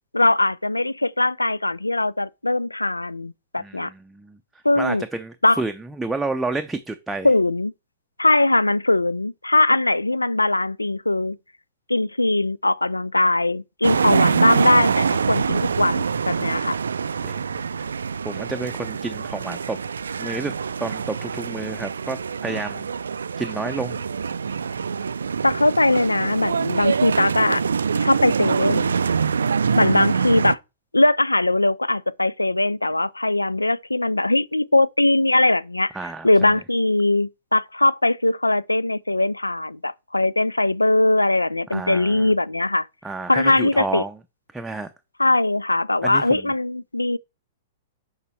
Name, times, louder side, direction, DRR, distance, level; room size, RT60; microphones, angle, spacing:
voice 1, 0.1-3.9 4.6-5.0 5.4-5.6 7.2-7.7 8.2-11.4 11.9-16.8 25.4-27.6 27.9-28.9 29.8-30.6 30.9-35.9 36.2-42.9 43.3-44.0 45.2-47.2, left 2 dB, 80° left, 0.3 m, -20 dB
voice 2, 3.6-4.4 4.8-7.3 17.2-17.4 18.2-19.8 20.2-20.5 20.8-22.9 23.4-24.0 35.9-36.6 41.7-42.3 43.0-44.1 44.5-44.9 46.0-46.4, right 3 dB, 5° right, 0.6 m, -30 dB
sound 1, 13.8-30.5, right 6 dB, 65° right, 0.3 m, -25 dB
6.7 x 5.5 x 4.4 m
figure-of-eight pair, 105°, 0 cm